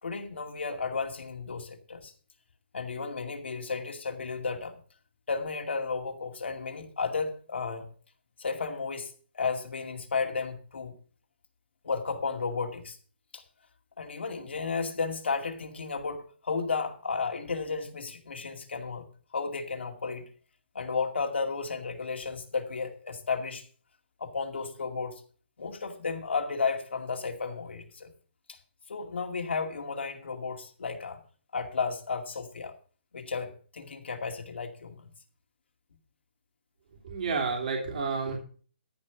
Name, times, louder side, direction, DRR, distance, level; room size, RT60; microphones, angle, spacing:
voice 1, 0.0-2.1 2.7-4.8 5.3-7.9 8.4-10.9 11.8-13.0 13.3-13.4 14.0-19.1 19.3-20.3 20.7-23.6 24.2-25.2 25.6-28.1 28.5-28.6 28.9-31.2 31.5-32.7 33.1-35.1, left 4 dB, 80° left, 2.4 m, -33 dB
voice 2, 37.0-38.4, right 4 dB, 45° right, 3.2 m, -30 dB
14.0 x 5.4 x 7.0 m
hypercardioid pair, 175°, 6 cm